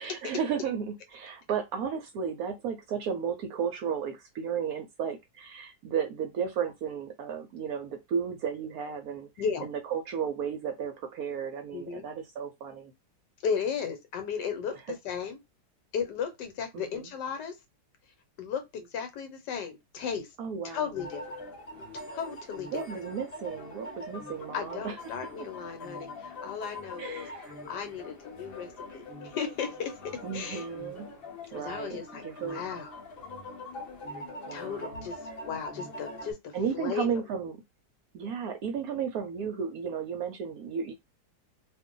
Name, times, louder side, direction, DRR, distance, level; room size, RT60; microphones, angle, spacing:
voice 1, 0.0-9.3 9.6-12.9 16.7-17.1 20.4-20.9 22.7-25.5 27.0-27.5 30.2-31.1 31.5-32.7 34.5-35.0 36.5-37.6 38.1-40.9, right 7 dB, 70° right, 0.9 m, -34 dB
voice 2, 9.4-9.7 11.7-12.1 13.4-15.4 15.9-17.6 18.4-20.3 20.6-21.3 22.1-22.8 24.5-30.7 31.5-33.0 34.5-37.2, left 6 dB, 75° left, 1.3 m, -35 dB
sound 1, 20.9-36.3, left 1 dB, 50° left, 0.7 m, -43 dB
2.6 x 2.5 x 3.7 m
omnidirectional pair, 1.9 m